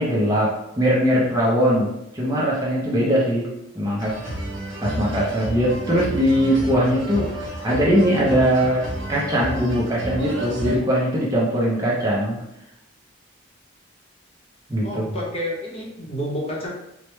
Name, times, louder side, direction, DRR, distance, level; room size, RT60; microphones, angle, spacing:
voice 1, 0.0-3.5 3.7-4.2 4.8-12.4 14.7-15.0, equal, 15° right, -5 dB, 0.6 m, -21 dB
sound 1, 4.0-10.7, equal, 70° right, 1.1 m, -31 dB
voice 2, 14.8-16.7, equal, 30° left, -3 dB, 0.9 m, -29 dB
4.8 x 2.1 x 3.0 m, 0.83 s
head